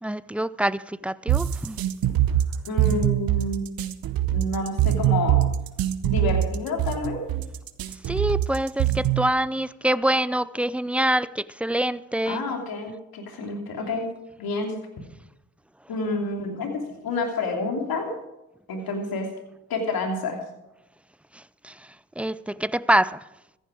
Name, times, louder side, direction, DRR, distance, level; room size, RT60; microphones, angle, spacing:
voice 1, 0.0-1.8 8.1-12.4 21.6-21.7 22.2-23.2, right 1 dB, 5° right, 0.5 m, -25 dB
sound 1, 1.3-9.3, right 12 dB, 75° right, 0.9 m, -23 dB
voice 2, 2.7-3.6 4.3-5.4 6.0-7.2 12.3-14.1 14.4-14.7 15.9-18.1 18.7-19.3 19.7-20.4, left 2 dB, 80° left, 2.9 m, -28 dB
14.5 x 10.5 x 4.9 m
supercardioid pair, 45°, 35 cm